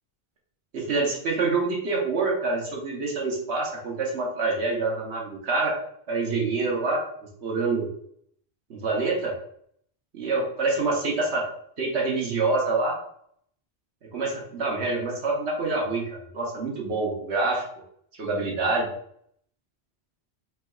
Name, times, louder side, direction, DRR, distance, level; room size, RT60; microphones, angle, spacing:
voice 1, 0.7-5.7 6.1-7.0 7.4-7.9 8.7-9.3 10.1-11.4 11.8-12.9 14.1-17.6 18.2-18.9, right 3 dB, 80° right, -1 dB, 1.3 m, -26 dB
4.5 x 3.2 x 2.3 m, 0.66 s
omnidirectional pair, 1.1 m